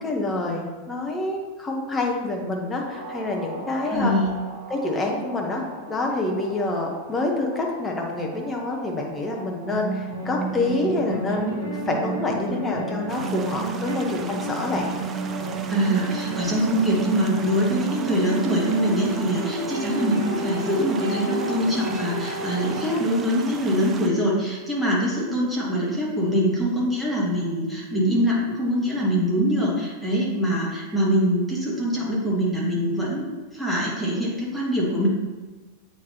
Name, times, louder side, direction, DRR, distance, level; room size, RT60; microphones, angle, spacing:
voice 1, 0.0-4.2 4.7-14.9, left 2 dB, 15° left, 0 dB, 1.2 m, -27 dB
sound 1, 2.9-22.8, right 2 dB, 55° right, 2.0 m, -32 dB
voice 2, 3.9-4.4 15.7-33.3 33.5-35.1, equal, 5° right, -6 dB, 1.9 m, -23 dB
sound 2, 13.1-24.1, right 6 dB, 25° right, 0.4 m, -38 dB
7.9 x 4.5 x 2.9 m, 1.3 s
figure-of-eight pair, 90°, 0 cm